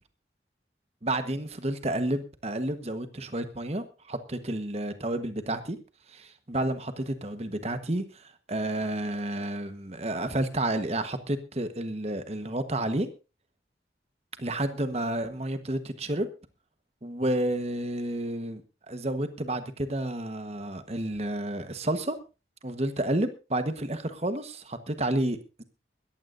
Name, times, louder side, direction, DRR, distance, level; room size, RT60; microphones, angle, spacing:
voice 1, 1.0-5.8 6.1-13.1 14.4-16.3 17.0-18.6 18.9-22.2 22.6-25.6, right 1 dB, 35° right, 9 dB, 1.3 m, -30 dB
20.5 x 14.5 x 2.6 m, 0.30 s
head